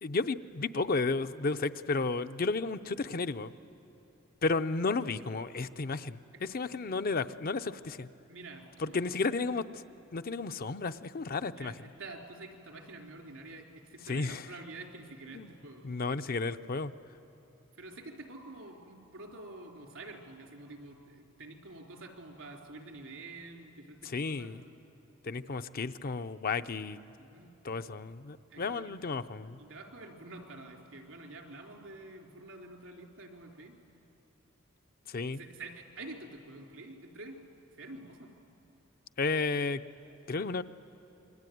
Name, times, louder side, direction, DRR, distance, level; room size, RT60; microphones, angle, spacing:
voice 1, 0.0-3.5 4.4-8.1 8.8-9.6 10.1-11.7 14.1-14.5 15.3-15.5 15.8-16.9 24.0-24.6 25.2-27.0 27.6-29.6 35.1-35.4 39.2-39.8 40.3-40.6, left 3 dB, 50° left, 10 dB, 0.6 m, -32 dB
voice 2, 8.3-9.3 11.5-15.9 17.8-24.5 27.2-27.5 28.5-29.1 29.6-33.8 35.3-37.4 37.7-38.3, right 2 dB, 85° right, 1 dB, 3.8 m, -48 dB
27.5 x 22.5 x 9.4 m, 2.9 s
head